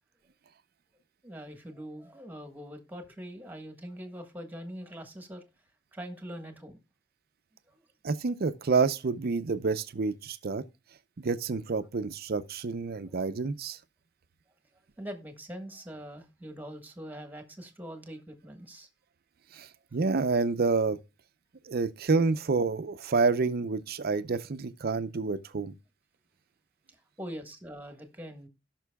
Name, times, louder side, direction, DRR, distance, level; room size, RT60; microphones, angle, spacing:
voice 1, 1.2-5.4 5.9-6.8 7.7-7.8 13.1-13.2 15.0-18.9 26.9-28.5, equal, 10° right, 1.4 m, -43 dB
voice 2, 8.0-10.6 11.2-13.8 19.5-21.0 21.7-25.7, right 4 dB, 55° right, 0.6 m, -28 dB
17.0 x 6.0 x 2.3 m
head